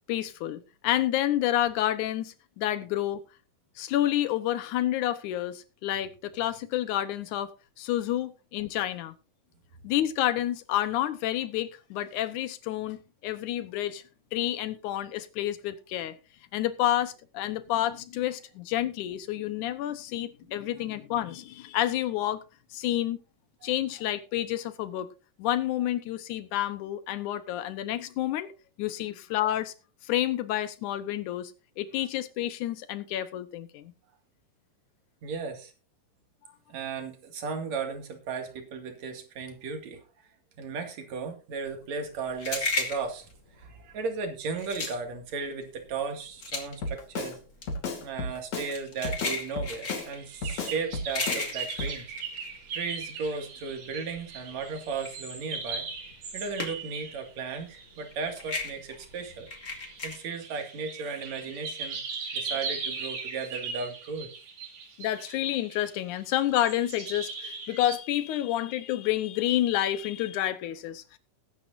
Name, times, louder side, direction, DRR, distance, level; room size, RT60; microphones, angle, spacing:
voice 1, 0.1-3.2 3.8-9.1 9.8-13.0 13.2-14.0 14.3-16.2 16.5-22.4 22.7-23.2 23.6-25.1 25.4-28.5 28.8-29.7 30.0-31.5 31.8-33.9 65.0-71.2, left 13 dB, 75° left, 2.3 m, -29 dB
voice 2, 35.2-35.7 36.7-40.0 40.6-47.4 48.0-52.1 52.7-59.5 60.0-62.0 62.3-64.3, right 5 dB, 55° right, 3.3 m, -35 dB
sound 1, 41.7-53.3 53.6-57.1 57.3-60.2, left 3 dB, 30° left, 2.6 m, -35 dB
Drum kit, 46.8-47.4 47.7-48.7 49.0-50.1 50.4-51.5 51.8-52.0, left 3 dB, 55° left, 3.3 m, -33 dB
sound 2, 50.0-58.7 59.4-68.0, right 5 dB, 85° right, 4.2 m, -39 dB
19.5 x 9.6 x 2.6 m
omnidirectional pair, 3.8 m